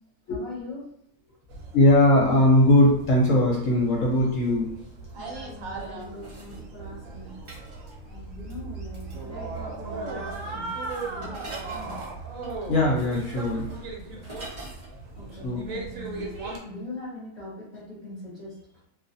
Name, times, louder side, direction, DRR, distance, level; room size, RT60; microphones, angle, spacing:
voice 1, 0.3-0.8 5.1-7.3 8.1-10.7 11.0-12.0 15.2-16.3 16.6-18.5, left 1 dB, 30° left, -10 dB, 0.9 m, -41 dB
sound 1, 1.5-16.6, right 3 dB, 65° right, 0.9 m, -38 dB
voice 2, 1.7-4.7 12.7-13.7 15.4-15.6, left 1 dB, 60° left, -3 dB, 1.0 m, -20 dB
sound 2, 5.8-6.6 7.4-8.0 8.5-8.6 8.9-9.3 9.5-9.8 10.1-14.9 15.2-15.3, right 2 dB, 30° right, 0.6 m, -45 dB
2.4 x 2.4 x 2.6 m, 0.75 s
omnidirectional pair, 1.7 m